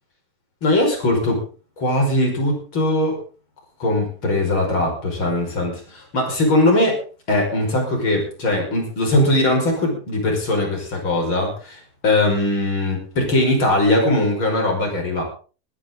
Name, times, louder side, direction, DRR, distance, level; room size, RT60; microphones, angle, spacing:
voice 1, 0.6-1.4 1.8-3.2 3.8-7.0 7.3-15.2, left 1 dB, 30° left, 1 dB, 6.1 m, -20 dB
20.0 x 13.5 x 3.9 m, 0.37 s
omnidirectional pair, 4.3 m